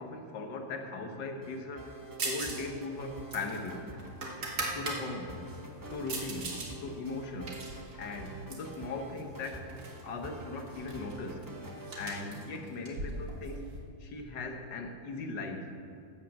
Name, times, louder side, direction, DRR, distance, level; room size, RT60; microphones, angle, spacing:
voice 1, 0.0-1.9 2.2-3.9 4.7-5.4 5.9-6.6 6.8-7.6 8.0-9.7 10.0-11.4 12.0-13.6 14.0-15.7, left 3 dB, 70° left, 5 dB, 1.8 m, -39 dB
sound 1, 1.4-12.7, right 1 dB, 20° right, 0.6 m, -46 dB
sound 2, 2.2-2.7 2.9-5.0 5.5-6.7 7.1-8.8 9.4-10.0 10.3-10.4 10.7-13.8, right 3 dB, 55° right, 2.2 m, -39 dB
12.5 x 8.8 x 7.5 m, 2.4 s
omnidirectional pair, 2.0 m